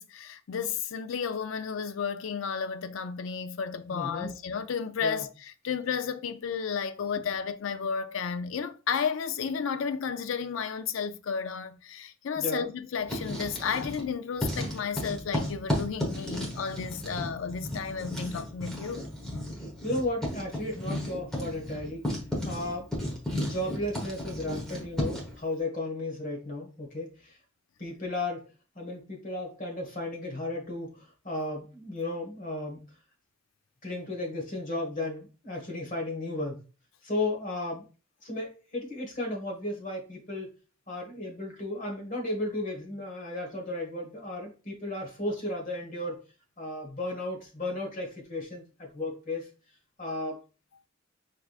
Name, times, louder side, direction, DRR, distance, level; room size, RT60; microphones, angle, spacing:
voice 1, 0.0-19.1, left 6 dB, 70° left, 0.4 m, -32 dB
voice 2, 3.9-4.3 5.0-5.2 12.4-12.7 19.6-22.1 22.4-22.9 23.4-27.4 27.8-28.4 28.7-32.8 33.8-36.6 37.0-37.8 38.2-40.5 40.9-46.2 46.6-49.5 50.0-50.4, left 1 dB, 40° left, 1.4 m, -34 dB
Writing, 12.9-14.1 14.4-25.4, left 1 dB, 5° left, 1.1 m, -34 dB
4.8 x 3.4 x 2.4 m
head